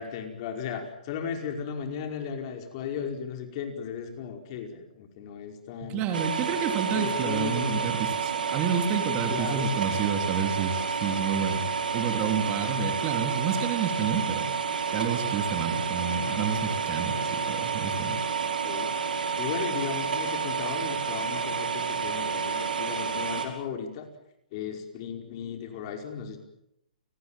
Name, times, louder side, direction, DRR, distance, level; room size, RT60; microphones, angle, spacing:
voice 1, 0.0-6.1 6.9-7.9 9.1-9.7 18.4-18.9 19.4-24.1 24.5-26.4, left 7 dB, 40° left, 4 dB, 5.1 m, -36 dB
voice 2, 5.8-11.7 11.9-14.4 14.9-18.2, right 6 dB, 30° right, 6 dB, 3.1 m, -29 dB
sound 1, 6.1-23.5, right 6 dB, 85° right, 5.8 m, -30 dB
30.0 x 19.0 x 7.4 m, 0.80 s
hypercardioid pair, 145°, 5 cm